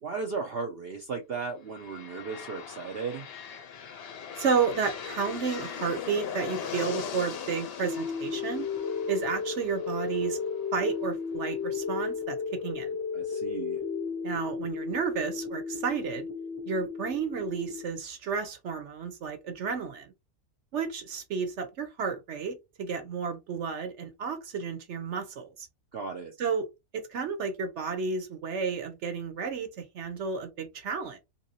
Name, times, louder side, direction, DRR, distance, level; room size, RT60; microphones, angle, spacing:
voice 1, 0.0-3.2 13.1-13.8 25.9-26.3, right 4 dB, 90° right, 0.5 m, -35 dB
sound 1, 1.6-11.4, left 7 dB, 60° left, 0.6 m, -40 dB
voice 2, 4.4-8.7 9.1-10.4 10.7-12.9 14.2-16.3 16.7-20.1 20.7-25.7 26.4-26.7 26.9-31.2, right 5 dB, 55° right, 0.8 m, -32 dB
sound 2, 7.8-17.8, left 5 dB, 20° left, 0.4 m, -34 dB
3.4 x 2.7 x 2.7 m
omnidirectional pair, 1.7 m